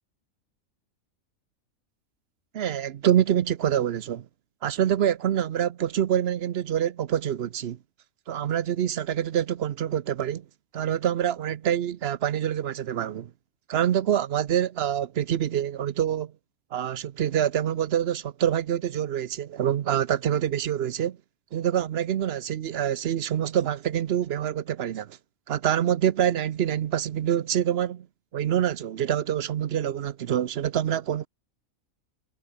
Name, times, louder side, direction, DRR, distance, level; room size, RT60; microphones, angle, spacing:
voice 1, 2.5-4.3 4.6-7.8 8.3-10.5 10.7-13.3 13.7-16.3 16.7-21.2 21.5-25.2 25.5-28.1 28.3-31.3, right 10 dB, 55° right, 0.8 m, -26 dB
omnidirectional pair, 1.5 m